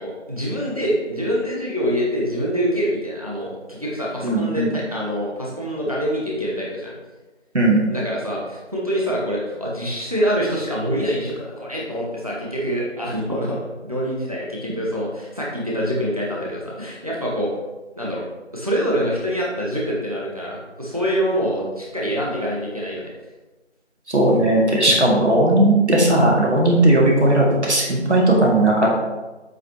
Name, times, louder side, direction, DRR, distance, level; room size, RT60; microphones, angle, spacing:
voice 1, 0.0-6.9 7.9-17.5 17.9-18.2 18.5-23.1, equal, 30° right, -4 dB, 1.1 m, -25 dB
voice 2, 4.2-4.7 7.5-7.8 24.1-28.9, right 1 dB, 70° right, -3 dB, 2.3 m, -17 dB
7.5 x 5.7 x 2.9 m, 1.1 s
figure-of-eight pair, 175°, 35 cm